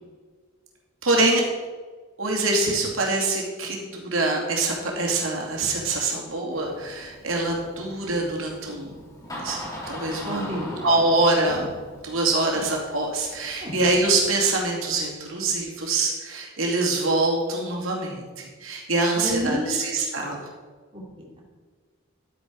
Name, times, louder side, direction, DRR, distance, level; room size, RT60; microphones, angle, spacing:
voice 1, 1.0-1.4 2.2-9.0 9.3-9.6 9.9-10.5 10.8-11.7 12.0-20.4, right 2 dB, 85° right, -1 dB, 2.5 m, -24 dB
Door, 6.5-14.2, equal, 20° left, 3.5 m, -40 dB
voice 2, 10.2-10.8 13.6-13.7 19.1-19.9 20.9-21.4, equal, 30° right, -4 dB, 3.0 m, -30 dB
12.0 x 9.0 x 4.6 m, 1.5 s
head